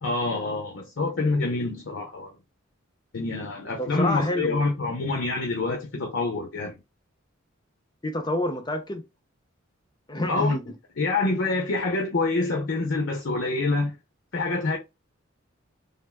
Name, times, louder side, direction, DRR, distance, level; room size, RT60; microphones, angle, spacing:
voice 1, 0.0-2.3 3.1-6.8 10.3-10.6 11.0-14.0 14.3-14.8, left 3 dB, 65° left, 0.7 m, -26 dB
voice 2, 3.8-4.7 8.0-9.0 10.1-10.6, left 1 dB, 20° left, 0.4 m, -28 dB
3.5 x 2.4 x 2.2 m
head